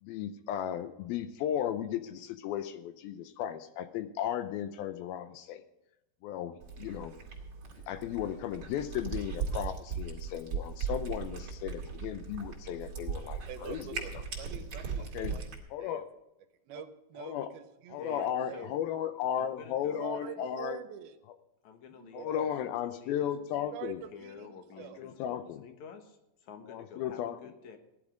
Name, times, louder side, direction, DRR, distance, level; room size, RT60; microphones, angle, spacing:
voice 1, 0.0-5.6 6.2-7.1 7.9-14.0 15.1-15.4 15.7-16.1 17.2-17.5 17.9-20.8 22.1-24.0 25.0-25.6 26.7-27.4, left 10 dB, 80° left, 11 dB, 2.5 m, -35 dB
Cat, 6.6-15.6, right 5 dB, 40° right, 2.8 m, -38 dB
voice 2, 13.5-15.5 15.8-16.0 16.7-18.8 19.9-21.2 21.9-22.7 23.7-25.0, right 9 dB, 80° right, 9 dB, 2.8 m, -45 dB
voice 3, 17.9-18.2 18.5-18.7 19.4-20.4 21.6-23.8 24.1-27.8, left 6 dB, 60° left, 7 dB, 2.3 m, -50 dB
16.0 x 11.0 x 5.1 m, 0.90 s
omnidirectional pair, 4.3 m